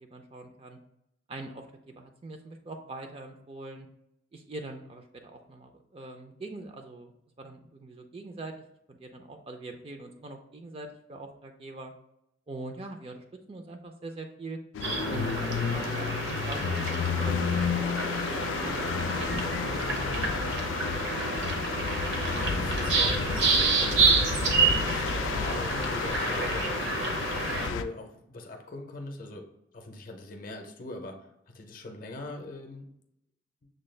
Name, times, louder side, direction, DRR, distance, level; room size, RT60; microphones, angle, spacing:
voice 1, 0.0-0.8 1.3-3.9 4.3-7.1 7.4-8.5 8.9-11.9 12.5-14.6 15.1-17.9 18.3-20.7, right 2 dB, 30° right, 4 dB, 0.4 m, -43 dB
sound 1, 14.7-27.8, left 6 dB, 90° left, 0.3 m, -31 dB
sound 2, 14.8-27.7, right 4 dB, 70° right, 0.7 m, -29 dB
voice 2, 21.6-24.5 24.8-26.9 27.4-29.5 29.7-32.9, left 2 dB, 45° left, 4 dB, 0.6 m, -42 dB
6.3 x 2.3 x 3.2 m, 0.78 s
head